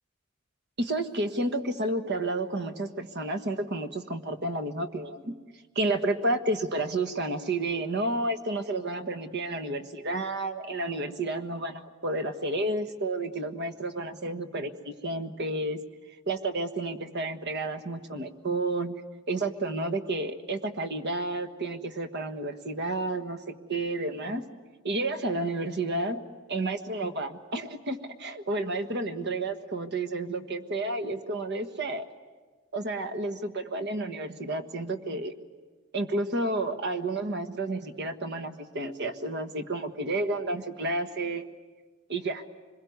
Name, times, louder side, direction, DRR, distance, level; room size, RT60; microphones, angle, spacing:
voice 1, 0.8-5.4 5.7-15.8 16.3-18.9 19.3-24.4 24.8-26.2 26.5-32.1 32.7-35.3 35.9-41.4 42.1-42.4, right 2 dB, 55° right, 8 dB, 1.5 m, -31 dB
25.5 x 22.0 x 9.5 m, 1.4 s
head